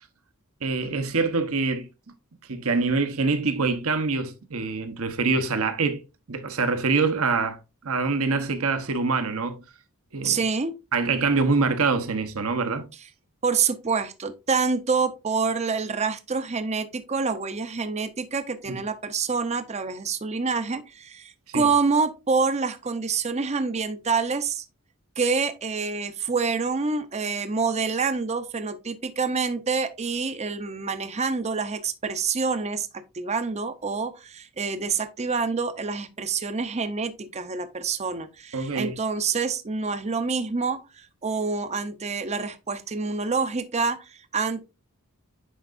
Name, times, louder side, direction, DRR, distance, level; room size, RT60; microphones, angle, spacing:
voice 1, 0.6-1.9 2.5-6.0 6.3-7.6 7.8-9.6 10.1-10.4 10.9-12.9 18.7-18.8 21.5-21.7 38.5-39.0, right 4 dB, 70° right, 1.0 m, -25 dB
voice 2, 10.2-10.7 13.4-24.6 25.2-44.6, right 4 dB, 30° right, 0.6 m, -27 dB
10.0 x 4.6 x 2.6 m
head